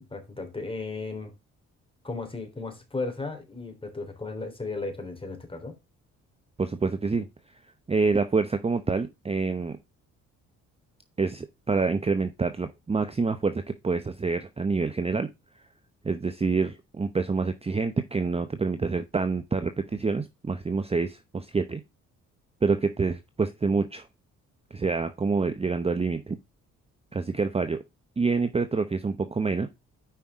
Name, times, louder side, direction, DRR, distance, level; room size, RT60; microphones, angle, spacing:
voice 1, 0.0-1.3 2.0-5.8, left 3 dB, 20° left, 3.5 m, -35 dB
voice 2, 6.6-7.3 7.9-9.8 11.2-15.3 16.0-21.8 22.6-24.1 24.7-26.4 27.1-27.8 28.2-29.7, right 4 dB, 20° right, 0.8 m, -27 dB
8.9 x 5.5 x 3.6 m
cardioid pair, 90°, 30 cm